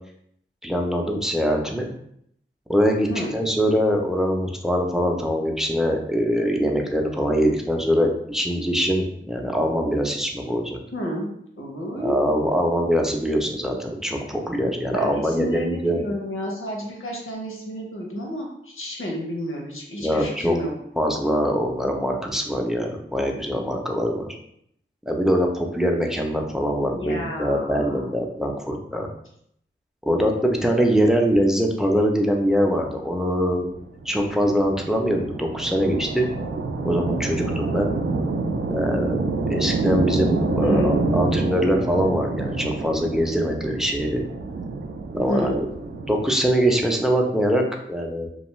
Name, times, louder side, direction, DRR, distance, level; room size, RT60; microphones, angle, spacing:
voice 1, 0.6-1.9 2.7-10.8 12.0-16.0 20.0-20.6 21.0-24.3 25.1-29.1 30.1-33.7 34.1-36.3 36.8-37.9 38.7-44.2 45.1-45.7 46.1-48.3, equal, ahead, 1 dB, 0.5 m, -23 dB
voice 2, 10.9-11.3 11.6-12.4 14.9-20.7 26.8-28.1 40.6-41.0 45.3-45.5, equal, 90° left, -1 dB, 0.7 m, -30 dB
sound 1, 32.5-46.2, right 3 dB, 80° right, 0.4 m, -27 dB
2.5 x 2.3 x 3.0 m, 0.70 s
wide cardioid pair, 40°, 21 cm